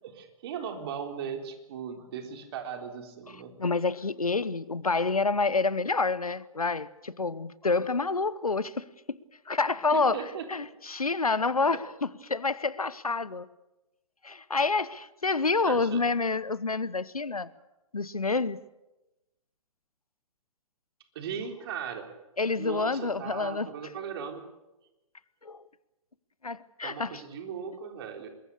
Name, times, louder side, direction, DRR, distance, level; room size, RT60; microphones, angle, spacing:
voice 1, 0.0-3.5 9.9-10.5 15.7-16.0 21.1-22.1 22.6-24.4 26.8-28.3, right 7 dB, 45° right, 3.8 m, -38 dB
voice 2, 3.6-9.2 9.5-10.2 10.5-13.5 14.2-17.5 17.9-18.6 22.4-23.7 25.4-25.6 26.4-27.1, left 3 dB, 85° left, 1.0 m, -28 dB
25.5 x 21.5 x 6.8 m
figure-of-eight pair, 120°, 18 cm